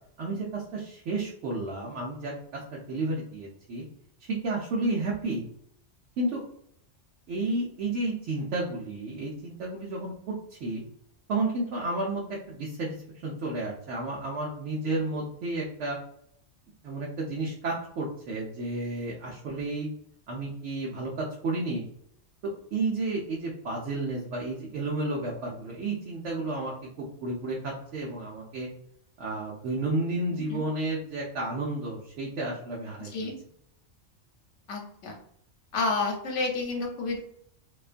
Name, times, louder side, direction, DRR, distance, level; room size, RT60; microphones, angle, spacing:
voice 1, 0.2-2.3 2.7-3.8 4.3-5.4 6.2-6.4 7.3-10.8 11.3-12.9 13.2-16.0 16.8-19.9 20.3-21.8 22.7-28.7 29.2-33.3, right 2 dB, 75° right, -4 dB, 0.9 m, -31 dB
voice 2, 33.0-33.3 34.7-35.2 35.7-37.2, left 3 dB, 75° left, 1 dB, 1.0 m, -30 dB
2.5 x 2.2 x 2.4 m, 0.68 s
omnidirectional pair, 1.3 m